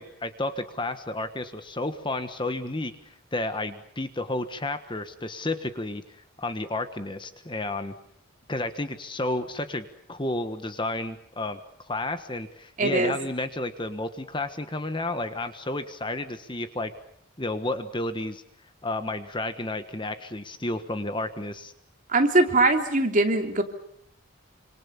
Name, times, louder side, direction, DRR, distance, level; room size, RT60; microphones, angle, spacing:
voice 1, 0.0-2.9 3.3-6.0 6.4-7.9 8.5-11.6 11.9-16.9 17.4-18.4 18.8-21.7, left 2 dB, 25° left, 9 dB, 1.3 m, -31 dB
voice 2, 12.8-13.1 22.1-23.6, right 2 dB, 40° right, 4 dB, 3.1 m, -21 dB
26.5 x 26.5 x 7.0 m, 0.70 s
head